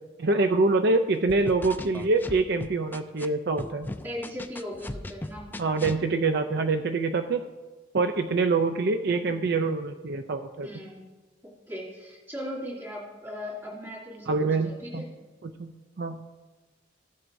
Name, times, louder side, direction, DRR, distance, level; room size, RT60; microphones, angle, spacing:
voice 1, 0.2-3.9 5.6-7.4 7.9-10.7 14.3-15.0 15.4-15.7 16.0-16.2, right 3 dB, 60° right, 7 dB, 0.5 m, -25 dB
sound 1, 1.3-3.3 3.6-6.0, left 1 dB, 10° left, 0.3 m, -37 dB
voice 2, 4.0-5.5 5.9-6.0 10.6-11.0 11.7-15.1, left 1 dB, 15° right, -5 dB, 2.8 m, -38 dB
15.5 x 7.6 x 2.6 m, 1.2 s
head